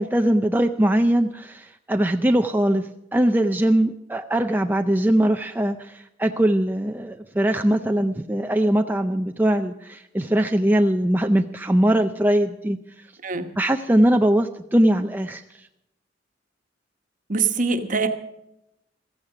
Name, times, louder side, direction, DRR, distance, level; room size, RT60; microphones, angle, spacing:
voice 1, 0.0-2.8 3.1-12.8 13.6-15.4, right 1 dB, 10° right, 5 dB, 0.5 m, -21 dB
voice 2, 17.3-18.1, right 4 dB, 45° right, 7 dB, 1.2 m, -23 dB
15.5 x 14.5 x 4.9 m, 0.85 s
head